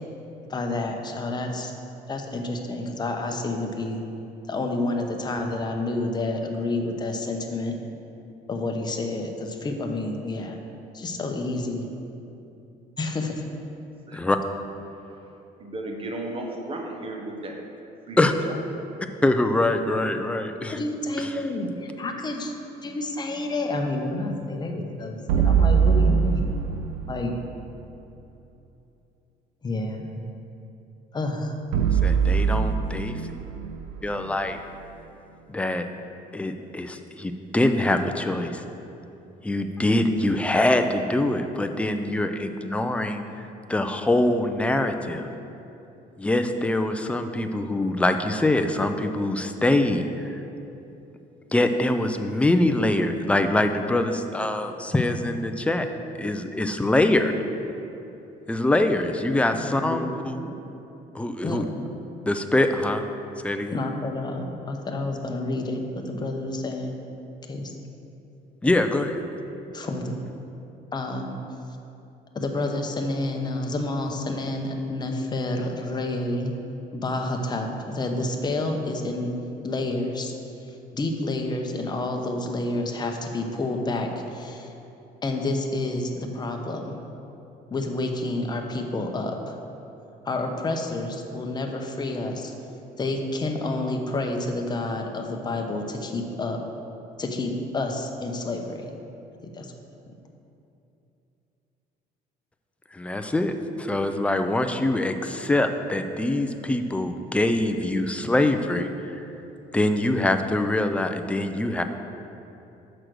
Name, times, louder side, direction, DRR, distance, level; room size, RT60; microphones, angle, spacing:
voice 1, 0.5-1.7 2.1-4.0 4.5-7.8 8.5-10.6 10.9-11.8 13.0-13.4 20.7-22.5 22.8-26.4 27.1-27.3 29.6-30.2 31.1-31.5 59.5-60.1 60.4-60.5 61.4-61.9 63.7-66.9 67.5-67.7 69.7-70.1 70.9-71.4 72.3-76.5 76.9-79.3 79.6-80.3 80.9-84.7 85.2-87.0 87.7-89.6 90.2-92.5 93.0-96.6 97.2-98.9 99.5-99.7, left 2 dB, 25° left, 3 dB, 0.8 m, -29 dB
voice 2, 14.9-15.3 15.6-17.6 18.1-18.3, right 2 dB, 30° right, 1 dB, 1.1 m, -35 dB
voice 3, 19.2-20.8 21.2-21.4 32.0-33.1 34.0-34.6 35.5-35.9 36.3-38.6 39.4-43.2 43.7-45.3 46.2-50.0 51.5-55.9 56.2-57.3 58.5-60.4 61.1-61.6 62.2-63.0 63.4-63.8 68.6-69.2 102.9-108.9 109.7-111.8, left 1 dB, 5° left, 7 dB, 0.4 m, -24 dB
sound 1, 25.3-27.5 31.7-34.9, right 6 dB, 90° right, 0.4 m, -23 dB
6.2 x 5.1 x 6.2 m, 2.9 s
cardioid pair, 110°, 17 cm